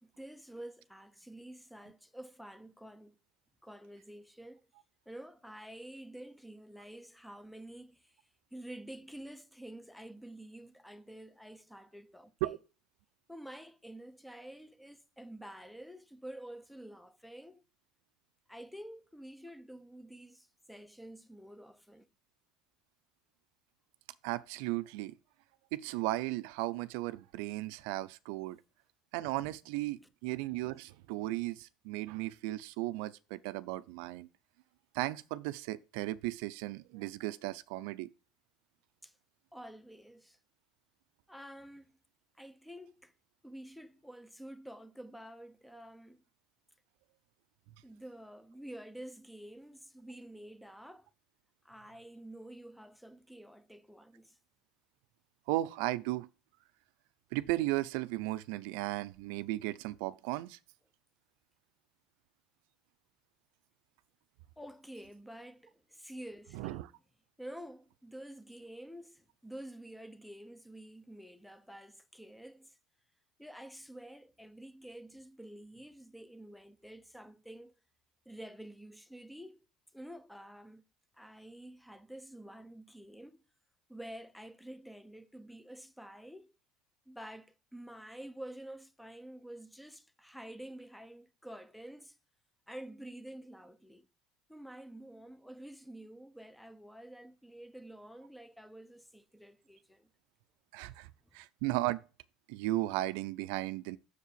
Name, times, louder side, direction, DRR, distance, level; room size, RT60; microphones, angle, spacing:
voice 1, 0.0-3.2 3.6-4.7 5.1-12.6 13.3-17.6 18.5-22.1 39.0-39.2 39.5-40.4 41.3-41.9 42.3-43.1 43.4-46.2 47.8-51.1 51.6-54.4 64.6-66.9 67.4-72.8 73.4-77.7 78.3-79.7 79.9-80.8 81.1-83.4 83.9-86.6 87.1-92.2 92.7-94.1 94.5-100.1 100.9-101.4, right 1 dB, ahead, 0.7 m, -49 dB
voice 2, 24.2-25.1 25.7-28.6 29.1-34.3 34.9-38.1 55.5-56.3 57.3-60.6 66.5-66.9 100.7-101.1 101.3-102.0 102.5-104.0, right 17 dB, 75° right, 0.5 m, -35 dB
6.6 x 4.7 x 6.7 m
supercardioid pair, 125°, 0 cm